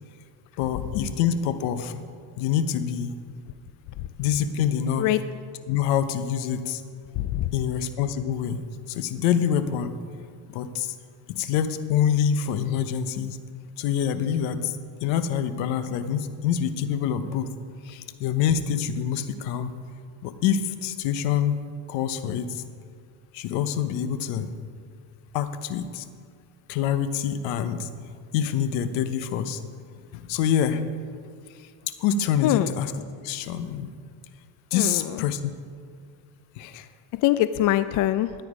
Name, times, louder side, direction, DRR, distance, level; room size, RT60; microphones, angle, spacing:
voice 1, 0.6-2.0 2.4-3.2 4.2-5.1 5.7-6.8 7.5-10.0 10.5-10.9 11.3-13.4 13.8-17.5 17.8-19.7 20.2-21.6 21.9-22.6 23.3-24.5 25.3-26.0 26.7-27.9 28.3-29.6 30.1-30.8 31.8-32.9 33.2-33.9 34.7-35.5 36.6-36.8, left 8 dB, 70° left, 11 dB, 1.0 m, -26 dB
voice 2, 7.2-7.5 32.4-32.7 34.7-35.2 36.7-36.9 37.1-38.3, left 14 dB, 45° left, 13 dB, 0.4 m, -23 dB
13.5 x 9.5 x 5.0 m, 2.1 s
supercardioid pair, 110°, 46 cm